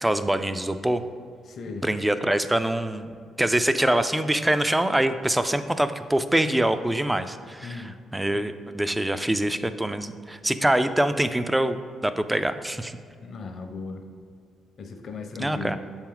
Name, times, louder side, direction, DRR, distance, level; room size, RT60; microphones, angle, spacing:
voice 1, 0.0-1.0 1.8-13.0 15.4-15.8, right 1 dB, 10° right, 11 dB, 0.3 m, -24 dB
voice 2, 1.4-1.9 7.6-7.9 13.2-14.0 14.8-15.8, left 4 dB, 55° left, 5 dB, 0.7 m, -37 dB
6.9 x 4.4 x 3.8 m, 2.2 s
cardioid pair, 95°, 0 cm